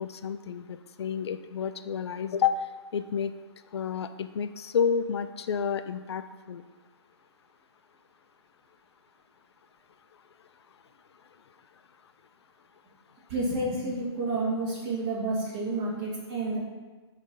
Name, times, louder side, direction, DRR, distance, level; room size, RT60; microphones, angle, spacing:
voice 1, 0.0-2.6 2.9-3.3 3.7-6.6, left 7 dB, 65° left, 10 dB, 0.4 m, -30 dB
voice 2, 13.3-16.6, right 2 dB, 35° right, -4 dB, 2.1 m, -30 dB
7.0 x 3.3 x 5.3 m, 1.3 s
hypercardioid pair, 140°, 15 cm